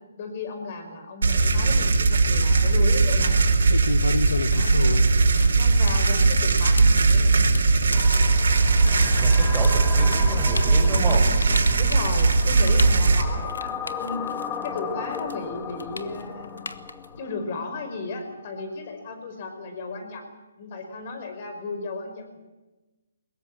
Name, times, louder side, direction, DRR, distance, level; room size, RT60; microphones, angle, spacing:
voice 1, 0.2-3.4 4.5-4.8 5.5-7.3 11.8-16.7 17.2-20.2 20.6-22.4, left 3 dB, 40° left, 6 dB, 5.1 m, -34 dB
sound 1, 1.2-13.2, right 3 dB, 70° right, 4.2 m, -19 dB
sound 2, 2.3-2.7 3.4-14.8 15.1-17.2, left 3 dB, 90° left, 1.4 m, -32 dB
sound 3, 7.9-18.0, left 6 dB, 15° left, 1.5 m, -36 dB
voice 2, 9.2-11.3, right 3 dB, 10° right, -3 dB, 5.3 m, -31 dB
22.5 x 19.5 x 7.6 m, 1.1 s
hypercardioid pair, 155°, 0 cm